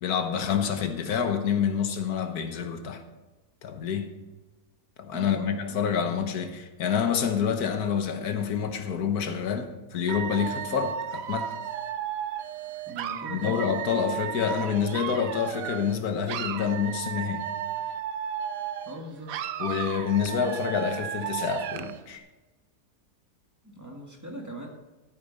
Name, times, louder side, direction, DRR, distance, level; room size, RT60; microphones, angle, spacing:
voice 1, 0.0-3.0 3.6-4.1 5.0-11.5 13.3-17.4 19.6-22.2, left 7 dB, 85° left, 1.5 m, -27 dB
voice 2, 5.1-5.8 12.9-13.6 18.9-19.3 23.6-24.7, right 1 dB, 10° right, 1.8 m, -40 dB
Dog / Alarm, 10.1-16.0 16.3-19.0 19.3-22.0, right 9 dB, 70° right, 1.0 m, -34 dB
13.5 x 8.6 x 4.1 m
omnidirectional pair, 1.6 m